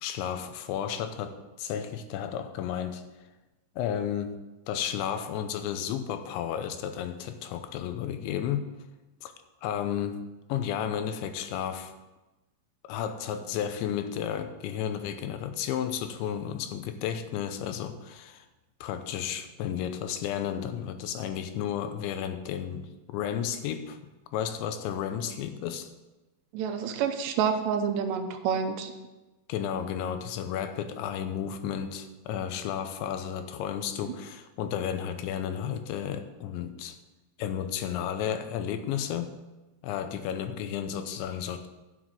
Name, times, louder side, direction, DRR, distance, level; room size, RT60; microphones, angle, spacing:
voice 1, 0.0-3.0 3.8-4.4 4.7-8.7 9.2-9.3 9.6-10.2 10.5-11.9 12.9-18.4 18.8-24.0 24.3-25.9 29.5-37.0 37.4-39.3 39.8-41.7, left 9 dB, 85° left, 9 dB, 3.1 m, -32 dB
voice 2, 26.5-28.9, right 7 dB, 80° right, 6 dB, 2.9 m, -28 dB
11.0 x 6.2 x 7.5 m, 1.1 s
omnidirectional pair, 5.2 m